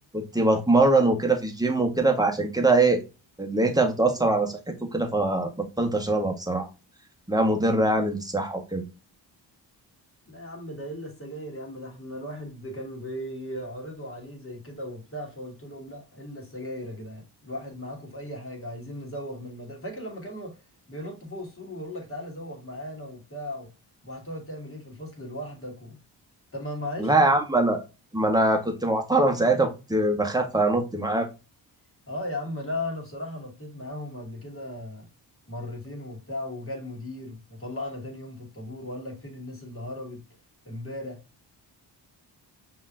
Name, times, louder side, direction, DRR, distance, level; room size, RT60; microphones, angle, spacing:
voice 1, 0.1-3.0 3.4-4.6 4.9-6.7 7.3-8.8 27.0-27.8 28.1-31.3, right 2 dB, 10° right, 1.3 m, -23 dB
voice 2, 10.3-20.6 20.9-23.7 24.0-26.0 26.5-27.3 32.1-35.1 35.5-40.2 40.6-41.2, left 1 dB, 30° left, 2.3 m, -37 dB
5.3 x 3.2 x 2.6 m
supercardioid pair, 50°, 46 cm